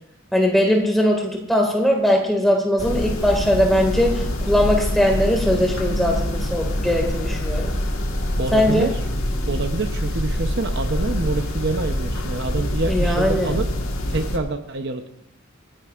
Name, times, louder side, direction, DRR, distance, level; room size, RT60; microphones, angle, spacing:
voice 1, 0.3-7.7 8.5-8.9 12.9-13.6, left 1 dB, ahead, 1 dB, 1.9 m, -20 dB
sound 1, 2.8-14.4, left 1 dB, 70° left, 1.6 m, -25 dB
voice 2, 8.4-9.0 9.5-13.7 14.1-15.1, right 3 dB, 55° right, 7 dB, 0.8 m, -26 dB
27.5 x 10.0 x 2.5 m, 0.75 s
head